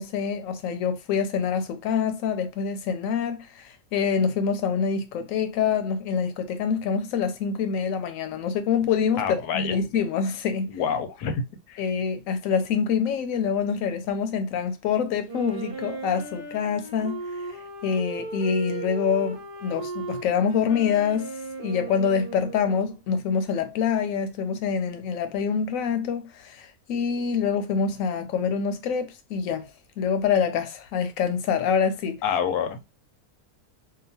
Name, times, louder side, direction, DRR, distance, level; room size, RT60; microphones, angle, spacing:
voice 1, 0.0-10.7 11.8-17.5 17.8-21.3 21.6-29.7 30.0-32.2, left 6 dB, 70° left, 0.9 m, -26 dB
voice 2, 9.2-9.8 10.7-11.4 11.7-11.8 32.2-32.8, left 7 dB, 85° left, 1.1 m, -27 dB
Wind instrument woodwind instrument, 15.3-22.9, right 3 dB, 25° right, 0.8 m, -37 dB
2.9 x 2.3 x 2.7 m
omnidirectional pair, 1.6 m